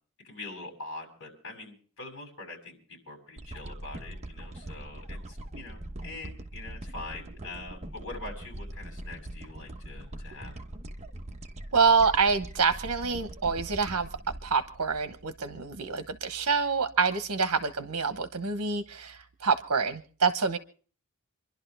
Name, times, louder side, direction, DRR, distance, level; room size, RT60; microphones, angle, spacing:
voice 1, 0.2-10.6, left 2 dB, 60° left, 2 dB, 6.8 m, -44 dB
sound 1, 3.4-15.7 16.2-16.3, right 1 dB, 30° right, 1.1 m, -42 dB
voice 2, 11.7-14.1 14.4-20.6, right 5 dB, 70° right, 8 dB, 1.0 m, -26 dB
27.5 x 11.5 x 3.4 m, 0.43 s
head